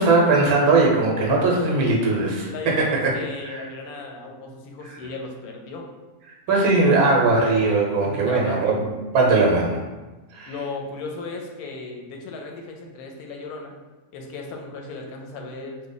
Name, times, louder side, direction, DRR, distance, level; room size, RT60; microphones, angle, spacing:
voice 1, 0.0-3.1 3.4-3.6 6.5-9.8 10.3-10.5, right 3 dB, 85° right, -1 dB, 1.2 m, -20 dB
voice 2, 2.5-5.9 8.0-8.8 10.5-13.8 14.1-15.9, left 3 dB, 85° left, 1 dB, 1.1 m, -36 dB
3.1 x 2.1 x 3.8 m, 1.2 s
omnidirectional pair, 1.5 m